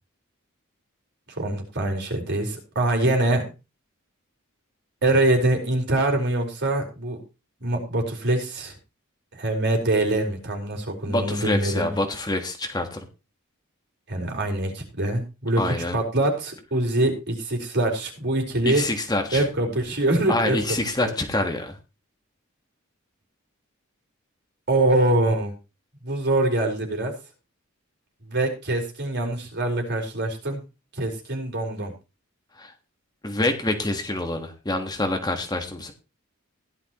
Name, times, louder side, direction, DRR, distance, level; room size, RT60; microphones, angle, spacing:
voice 1, 1.3-3.5 5.0-7.2 7.6-8.7 9.3-11.9 14.1-15.6 15.9-18.8 19.3-20.6 21.0-21.1 24.7-25.5 26.0-27.1 28.2-30.6 31.0-31.9, right 1 dB, 50° right, 3 dB, 4.5 m, -24 dB
voice 2, 11.1-13.0 15.6-16.0 18.6-19.5 20.3-21.8 32.6-32.7 33.2-35.9, left 2 dB, 20° left, 4 dB, 1.5 m, -26 dB
16.0 x 11.5 x 3.0 m, 0.29 s
head